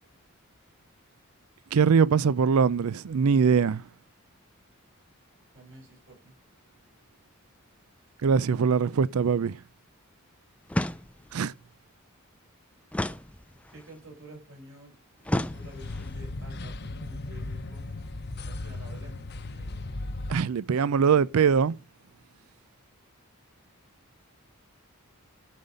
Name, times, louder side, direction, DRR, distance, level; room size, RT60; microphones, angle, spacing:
voice 1, 1.7-3.8 8.2-9.6 11.3-11.5 20.3-21.8, right 6 dB, 80° right, 0.4 m, -22 dB
voice 2, 5.5-6.3 13.7-14.9 15.3-18.0 18.4-19.3 19.6-19.7, right 1 dB, 60° right, 6.4 m, -49 dB
sound 1, 10.7-11.4 12.9-13.9 15.3-16.1, left 1 dB, 5° left, 0.4 m, -31 dB
sound 2, 15.4-20.4, left 2 dB, 50° left, 0.8 m, -37 dB
11.5 x 5.7 x 5.1 m
head